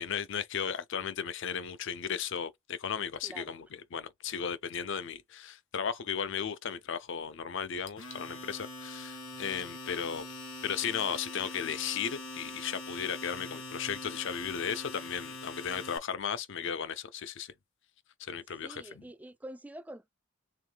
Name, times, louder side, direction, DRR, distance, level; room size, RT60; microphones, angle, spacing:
voice 1, 0.0-10.2 10.6-17.5 18.2-19.0, left 7 dB, 65° left, 0.6 m, -35 dB
voice 2, 3.2-3.6 18.6-20.1, right 1 dB, 10° right, 0.3 m, -46 dB
Domestic sounds home sounds, 7.9-16.0, left 2 dB, 80° left, 1.8 m, -43 dB
4.6 x 3.7 x 2.2 m
head